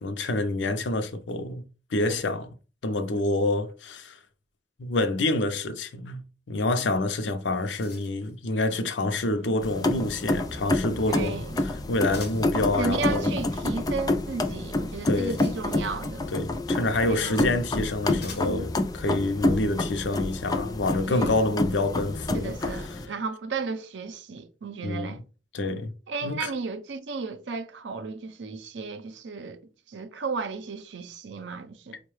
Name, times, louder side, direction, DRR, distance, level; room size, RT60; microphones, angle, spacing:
voice 1, 0.0-1.6 1.9-2.5 2.8-4.2 4.8-11.4 11.9-13.3 15.1-15.4 16.3-22.7 24.8-25.1 25.5-25.9 26.2-26.5, left 2 dB, 75° left, 0.6 m, -27 dB
sound 1, 7.3-8.4 12.1-12.6 14.8-16.0 17.1-17.2 18.2-18.7, left 5 dB, 60° left, 1.0 m, -46 dB
sound 2, 9.6-23.1, left 2 dB, 20° left, 0.4 m, -28 dB
voice 2, 11.1-11.6 12.8-16.3 17.1-17.5 21.1-21.4 22.3-25.2 26.1-29.6 29.9-32.0, right 4 dB, 75° right, 0.5 m, -34 dB
4.5 x 2.2 x 3.1 m
head